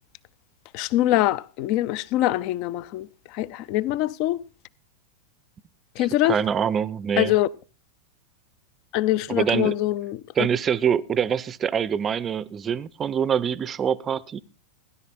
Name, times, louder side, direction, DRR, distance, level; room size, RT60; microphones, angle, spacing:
voice 1, 0.7-4.4 6.0-6.4 7.2-7.5 8.9-10.5, left 15 dB, 45° left, 0.5 m, -24 dB
voice 2, 6.0-7.3 9.3-9.8 10.4-14.4, right 8 dB, 25° right, 0.6 m, -25 dB
16.5 x 11.0 x 4.1 m
figure-of-eight pair, 90°, 0 cm